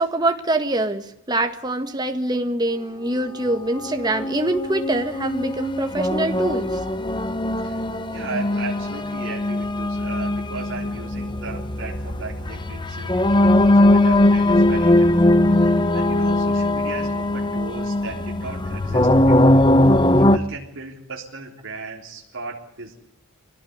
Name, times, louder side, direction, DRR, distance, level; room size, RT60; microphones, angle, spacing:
voice 1, 0.0-6.8, right 2 dB, 20° right, 6 dB, 1.8 m, -24 dB
sound 1, 3.8-20.4, left 1 dB, 20° left, 0.8 m, -20 dB
voice 2, 7.6-19.7 20.1-23.0, right 3 dB, 60° right, -3 dB, 3.7 m, -36 dB
24.0 x 17.5 x 8.2 m, 0.78 s
head